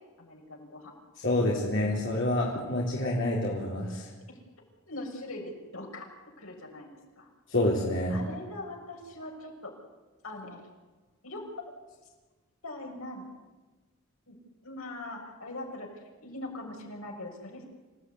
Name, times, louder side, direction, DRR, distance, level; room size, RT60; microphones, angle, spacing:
voice 1, 0.2-0.9 4.3-4.4 4.9-6.1 6.4-6.9 7.2-7.3 8.1-9.7 10.2-10.7 11.2-11.5 12.6-13.3 14.3-14.4 14.6-17.6, left 2 dB, 80° left, 0 dB, 6.6 m, -41 dB
voice 2, 1.2-4.1 7.5-8.2, left 1 dB, 60° left, -4 dB, 4.2 m, -27 dB
27.5 x 16.5 x 9.6 m, 1.3 s
head